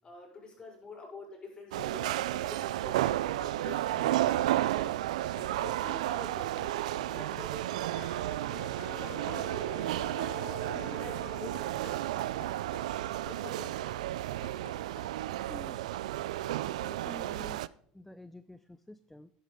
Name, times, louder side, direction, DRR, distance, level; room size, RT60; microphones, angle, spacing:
voice 1, 0.0-4.9 5.5-7.8 8.1-9.7 10.3-11.1 11.4-12.5 13.2-13.8, left 3 dB, 25° left, -1 dB, 5.2 m, -48 dB
sound 1, 1.7-17.7, right 14 dB, 90° right, 0.3 m, -32 dB
sound 2, 3.1-15.0, left 4 dB, 60° left, 4.5 m, -54 dB
Bowed string instrument, 7.7-12.2, left 21 dB, 80° left, 0.7 m, -49 dB
voice 2, 15.5-15.8 16.6-19.3, left 1 dB, 5° left, 12 dB, 0.4 m, -49 dB
12.5 x 10.5 x 3.7 m, 0.64 s
supercardioid pair, 105°, 4 cm